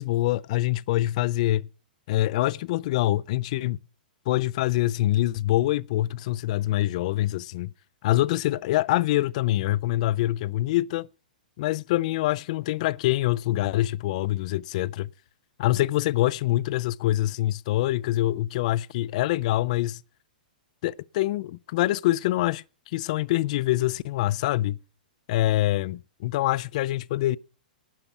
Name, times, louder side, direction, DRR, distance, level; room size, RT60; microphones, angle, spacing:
voice 1, 0.0-1.7 2.1-3.8 4.3-7.7 8.0-11.1 11.6-15.1 15.6-20.0 20.8-22.6 22.9-24.8 25.3-27.4, left 15 dB, 50° left, 0.5 m, -25 dB
12.0 x 9.7 x 6.0 m
figure-of-eight pair, 110°, 5 cm